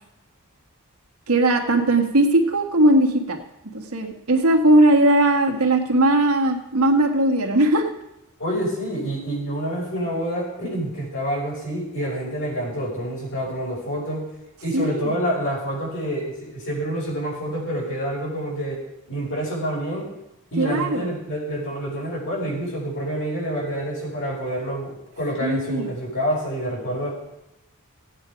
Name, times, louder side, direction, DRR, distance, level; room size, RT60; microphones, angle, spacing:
voice 1, 1.3-3.4 3.7-7.9 14.7-15.2 20.6-21.1 25.4-25.9, right 1 dB, 70° right, 3 dB, 1.5 m, -19 dB
voice 2, 8.4-14.2 14.6-18.8 19.1-20.1 20.5-27.1, equal, 60° left, -4 dB, 5.8 m, -27 dB
16.5 x 8.9 x 5.1 m, 0.90 s
head